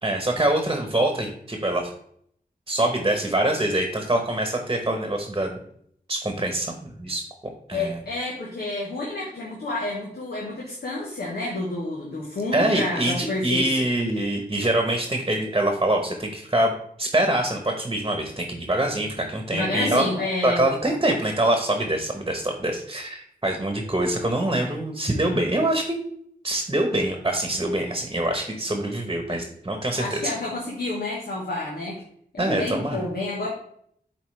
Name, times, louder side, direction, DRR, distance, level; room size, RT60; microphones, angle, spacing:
voice 1, 0.0-1.9 2.7-5.6 6.1-7.2 7.7-8.0 12.5-16.7 17.0-20.1 20.4-26.0 26.4-30.3 32.4-33.0, right 1 dB, 25° right, 4 dB, 1.0 m, -24 dB
voice 2, 7.7-13.8 19.5-20.6 29.3-29.4 30.0-32.0 32.3-33.5, left 2 dB, 85° left, -4 dB, 1.3 m, -29 dB
7.6 x 4.1 x 3.3 m, 0.66 s
cardioid pair, 50°, 16 cm